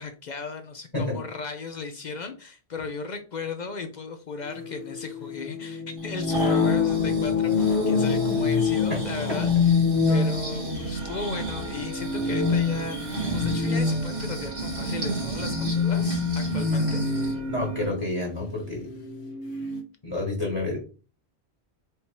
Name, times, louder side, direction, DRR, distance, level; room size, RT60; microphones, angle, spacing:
voice 1, 0.0-9.5 10.1-17.0, left 4 dB, 55° left, 6 dB, 0.5 m, -36 dB
sound 1, 4.5-19.8, left 5 dB, 75° left, 1.1 m, -26 dB
Breathing, 6.0-17.4 17.8-17.9, right 3 dB, 55° right, 1.8 m, -34 dB
sound 2, 10.9-17.9, right 4 dB, 75° right, 1.7 m, -46 dB
voice 2, 17.5-18.9 20.0-20.8, left 2 dB, 30° left, -3 dB, 1.3 m, -29 dB
5.0 x 2.8 x 2.9 m, 0.36 s
omnidirectional pair, 1.1 m